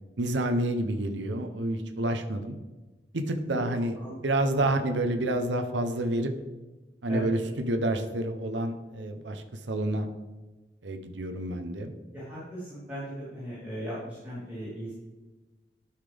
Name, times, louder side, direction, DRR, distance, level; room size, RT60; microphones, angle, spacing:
voice 1, 0.2-2.5 3.1-3.9 4.2-6.3 7.0-10.1 10.8-11.9, right 1 dB, 85° right, 7 dB, 0.8 m, -29 dB
voice 2, 12.1-14.9, equal, 10° right, -13 dB, 3.2 m, -37 dB
12.0 x 5.7 x 3.4 m, 1.2 s
head